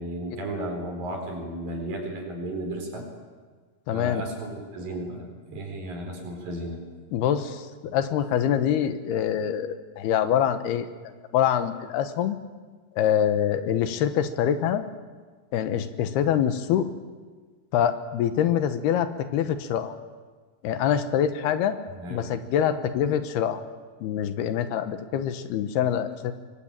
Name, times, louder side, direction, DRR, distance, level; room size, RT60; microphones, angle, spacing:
voice 1, 0.0-3.1 3.9-7.0 22.0-22.3, right 1 dB, 60° right, 3 dB, 6.1 m, -34 dB
voice 2, 3.9-4.2 7.1-10.9 11.3-12.4 12.9-14.8 15.5-16.9 17.7-20.0 20.6-21.8 22.1-23.6 24.0-26.3, left 9 dB, 80° left, 10 dB, 3.1 m, -25 dB
24.5 x 21.0 x 8.9 m, 1.4 s
omnidirectional pair, 4.6 m